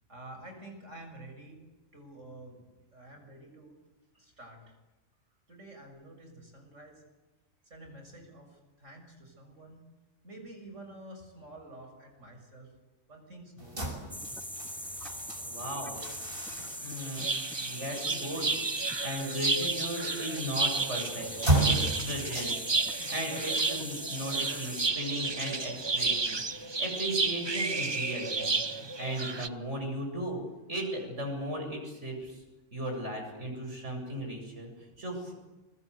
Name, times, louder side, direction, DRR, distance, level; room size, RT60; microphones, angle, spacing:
voice 1, 0.1-1.6 1.9-2.6 2.9-3.8 4.2-4.8 5.5-7.1 7.6-9.8 10.2-12.7 13.1-14.2, right 1 dB, 90° right, 4 dB, 7.3 m, -49 dB
sound 1, 13.6-26.7, right 2 dB, 50° right, 5.9 m, -36 dB
sound 2, 14.1-24.9, equal, ahead, 0.6 m, -41 dB
voice 2, 15.4-16.1 16.8-18.6 19.0-30.4 30.7-32.4 32.7-35.3, equal, 70° right, 1 dB, 8.3 m, -37 dB
sound 3, 17.2-29.5, right 3 dB, 25° right, 0.8 m, -32 dB
29.5 x 23.0 x 8.3 m, 1.1 s
omnidirectional pair, 1.2 m